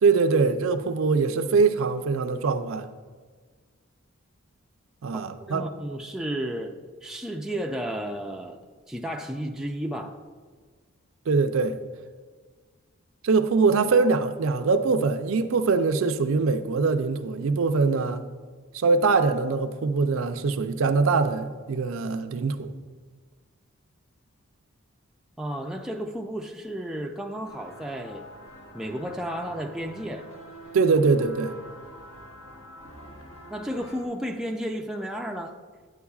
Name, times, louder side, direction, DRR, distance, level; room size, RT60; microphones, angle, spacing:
voice 1, 0.0-2.9 5.0-5.7 11.3-11.8 13.2-18.2 18.7-22.7 30.7-31.5, right 4 dB, 70° right, 0.4 m, -23 dB
voice 2, 5.1-6.8 7.0-10.2 25.4-28.2 28.7-30.3 33.5-35.6, equal, 5° right, 0.3 m, -33 dB
sound 1, 27.4-34.1, right 1 dB, 75° left, 1.4 m, -46 dB
9.4 x 8.2 x 2.4 m
head